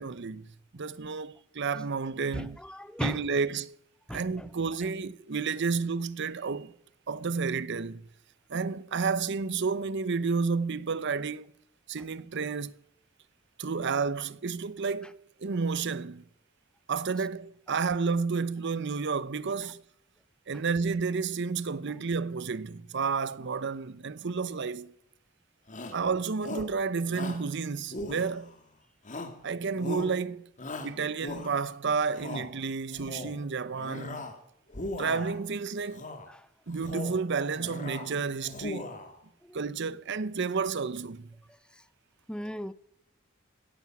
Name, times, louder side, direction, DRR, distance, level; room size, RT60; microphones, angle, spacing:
voice 1, 0.0-2.6 3.0-3.8 4.1-6.7 7.1-8.0 8.5-11.5 11.9-12.8 13.6-16.2 16.9-19.8 20.5-24.9 25.9-28.5 29.4-30.4 30.8-34.3 35.0-36.1 36.7-38.9 39.5-41.3, right 5 dB, 60° right, 0.7 m, -31 dB
voice 2, 2.3-3.3 4.1-4.5 36.3-36.5 39.4-39.6 41.7-41.8 42.3-42.7, equal, 5° left, 0.7 m, -37 dB
Shout, 25.7-26.0 26.4-26.8 27.1-27.5 27.9-28.6 29.1-29.4 29.8-30.2 30.6-31.7 32.1-32.5 32.9-33.4 33.8-34.4 34.7-35.4 35.9-36.3 36.7-37.2 37.6-38.1 38.4-39.1, left 2 dB, 40° left, 2.2 m, -39 dB
16.5 x 13.5 x 6.1 m
head